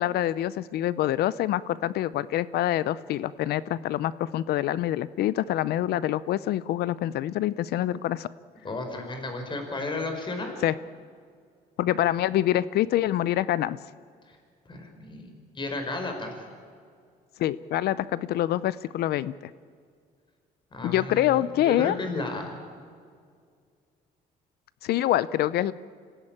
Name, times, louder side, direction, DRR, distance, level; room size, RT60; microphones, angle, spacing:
voice 1, 0.0-8.3 10.6-10.7 11.8-13.8 17.4-19.3 20.8-21.9 24.8-25.7, left 13 dB, 70° left, 18 dB, 0.6 m, -26 dB
voice 2, 8.6-10.5 14.2-14.4 14.6-15.3 15.5-16.4 20.7-22.5, left 2 dB, 30° left, 5 dB, 4.7 m, -33 dB
26.0 x 17.0 x 8.8 m, 2.1 s
cardioid pair, 110°, 17 cm